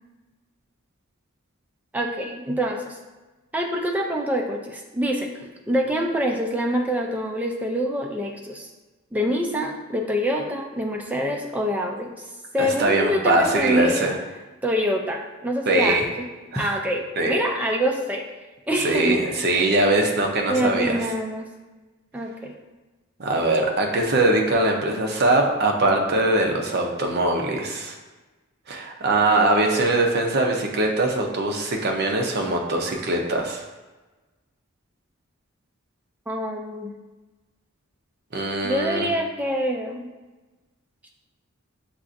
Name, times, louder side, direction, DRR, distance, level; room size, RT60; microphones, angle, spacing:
voice 1, 1.9-3.0 3.5-5.3 5.7-8.7 9.1-12.1 12.5-14.2 14.6-16.3 16.6-18.3 18.7-19.2 20.5-21.5 22.1-22.5 36.3-36.9 38.6-40.0, equal, 5° right, 1 dB, 0.4 m, -25 dB
voice 2, 12.6-14.2 15.7-16.1 16.5-16.8 17.2-17.4 18.8-21.0 23.2-27.9 28.7-33.6 38.3-39.1, right 2 dB, 50° right, 1 dB, 0.6 m, -22 dB
6.9 x 2.4 x 2.5 m, 1.2 s
head